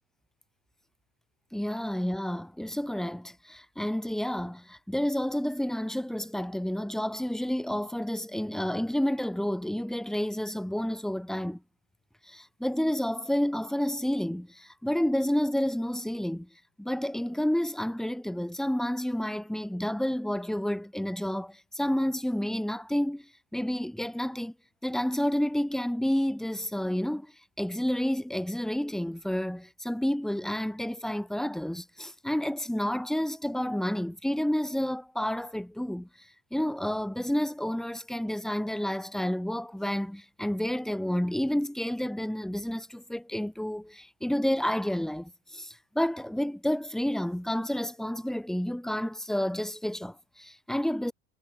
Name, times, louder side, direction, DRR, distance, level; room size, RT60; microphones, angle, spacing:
voice 1, 1.5-11.6 12.2-16.5 16.8-24.5 24.8-27.3 27.6-51.1, equal, ahead, 2.4 m, -30 dB
hypercardioid pair, 100°, 42 cm